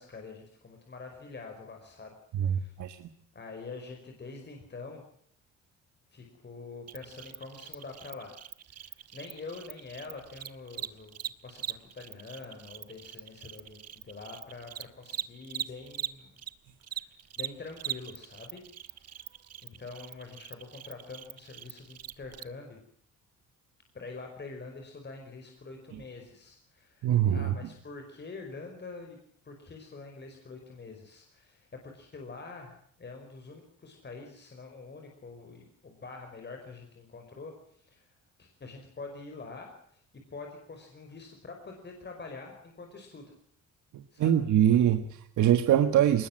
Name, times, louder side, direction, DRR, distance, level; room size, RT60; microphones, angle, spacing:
voice 1, 0.0-2.1 2.4-2.7 3.3-5.0 6.1-8.4 8.7-11.2 11.4-16.3 16.9-19.2 19.6-22.8 23.9-29.2 29.4-38.1 38.4-40.0 40.3-43.3 44.1-44.3, left 3 dB, 35° left, 3 dB, 5.1 m, -45 dB
voice 2, 2.3-3.1 25.9-26.0 27.0-27.6 43.9-46.3, right 10 dB, 75° right, 9 dB, 1.5 m, -24 dB
Cricket, 6.9-16.5 16.8-22.4, right 10 dB, 55° right, 1.3 m, -41 dB
21.0 x 19.5 x 7.5 m, 0.64 s
cardioid pair, 90°, 30 cm